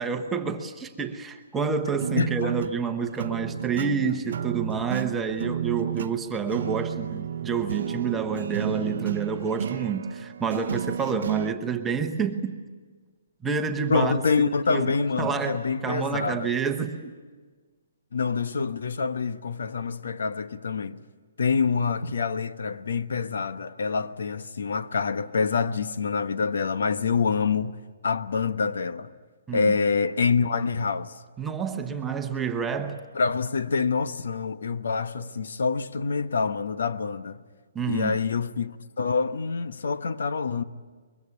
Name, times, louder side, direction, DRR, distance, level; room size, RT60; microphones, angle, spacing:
voice 1, 0.0-12.6 13.4-14.9 15.2-17.1 29.5-29.8 31.4-33.0 37.7-38.2, right 6 dB, 5° right, 1.0 m, -29 dB
sound 1, 2.0-11.5, right 8 dB, 55° right, 0.7 m, -32 dB
voice 2, 2.2-2.5 13.9-16.5 18.1-21.0 21.4-27.8 28.0-29.1 29.5-31.2 33.1-37.4 37.9-40.6, left 5 dB, 75° left, 1.1 m, -26 dB
23.5 x 23.0 x 9.7 m
hypercardioid pair, 175°, 0 cm